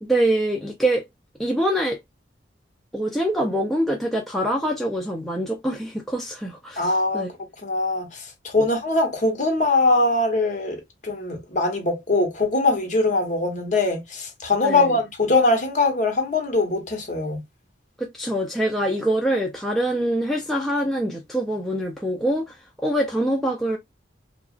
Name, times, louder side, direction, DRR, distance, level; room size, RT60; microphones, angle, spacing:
voice 1, 0.0-1.1 1.4-2.0 2.9-7.3 14.6-15.0 18.0-23.8, right 1 dB, ahead, 0.3 m, -24 dB
voice 2, 6.8-7.3 7.6-17.4, left 2 dB, 40° left, 0.9 m, -22 dB
2.8 x 2.3 x 2.3 m
head